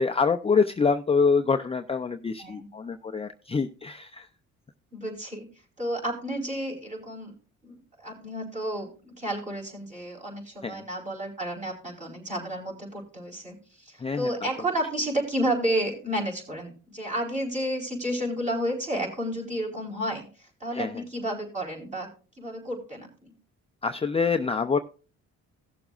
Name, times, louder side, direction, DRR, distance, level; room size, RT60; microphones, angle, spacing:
voice 1, 0.0-4.3 10.6-10.8 14.0-14.5 20.7-21.0 23.8-24.8, left 5 dB, 20° left, 5 dB, 0.5 m, -25 dB
voice 2, 4.9-5.4 5.8-7.3 7.6-22.1 22.4-23.3, right 1 dB, 25° right, -2 dB, 4.4 m, -31 dB
17.5 x 6.9 x 2.5 m, 0.37 s
cardioid pair, 90°, 30 cm